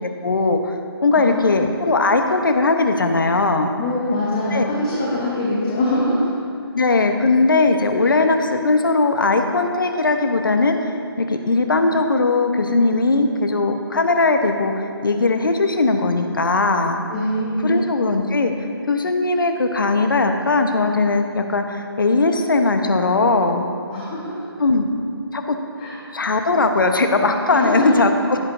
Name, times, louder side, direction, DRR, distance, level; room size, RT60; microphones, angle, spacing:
voice 1, 0.0-0.8 1.0-3.7 4.5-4.7 6.7-17.0 17.6-18.5 18.9-23.6 24.6-24.9 25.3-25.6 26.1-28.4, left 3 dB, 55° left, 5 dB, 1.0 m, -19 dB
voice 2, 1.1-1.7 3.8-6.3 8.0-8.1 17.1-17.7 23.9-24.5 25.8-26.0 27.5-28.0, left 1 dB, 20° left, -7 dB, 1.4 m, -23 dB
16.0 x 8.4 x 2.6 m, 2.4 s
figure-of-eight pair, 155°, 13 cm